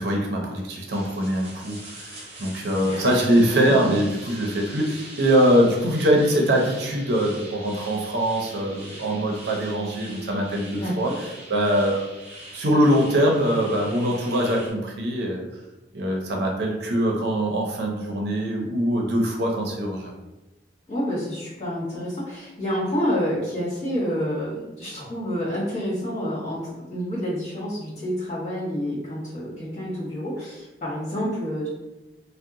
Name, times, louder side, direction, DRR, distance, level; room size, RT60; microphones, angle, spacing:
voice 1, 0.0-11.1 11.5-12.0 12.5-15.4 15.9-20.1, equal, 70° right, 0 dB, 0.6 m, -23 dB
sound 1, 0.9-14.7, right 1 dB, 35° right, 0.8 m, -43 dB
voice 2, 2.8-3.2 10.7-11.1 20.9-31.7, equal, 40° left, -9 dB, 1.5 m, -28 dB
2.8 x 2.1 x 3.6 m, 1.0 s
head